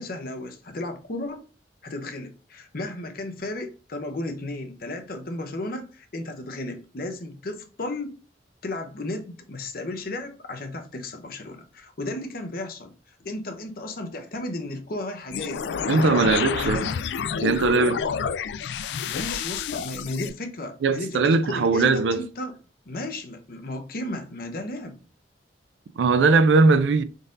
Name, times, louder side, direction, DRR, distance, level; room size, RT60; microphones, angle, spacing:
voice 1, 0.0-1.5 1.8-8.2 8.6-12.9 13.2-15.6 15.9-16.8 19.0-22.5 22.9-25.0, left 2 dB, 55° left, 0.7 m, -34 dB
sound 1, 15.3-20.3, left 6 dB, 70° left, 0.3 m, -29 dB
voice 2, 15.9-16.9 17.4-18.0 20.8-22.2 26.0-27.0, right 3 dB, 85° right, 0.4 m, -20 dB
3.9 x 2.7 x 3.6 m
head